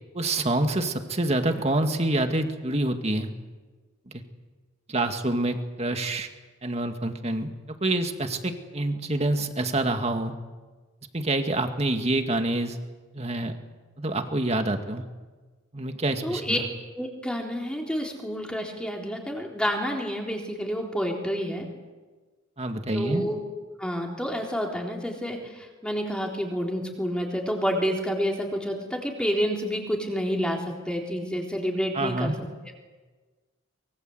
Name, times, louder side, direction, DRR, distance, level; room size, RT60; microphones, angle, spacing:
voice 1, 0.1-3.3 4.9-6.3 6.6-10.3 11.1-12.8 13.1-13.5 14.0-15.0 15.7-16.6 22.6-23.2 31.9-32.4, right 2 dB, 30° right, 6 dB, 2.1 m, -27 dB
voice 2, 16.2-16.6 16.9-21.7 22.9-23.4 23.8-32.3, equal, 5° left, 0 dB, 3.7 m, -29 dB
24.5 x 23.0 x 8.0 m, 1.3 s
head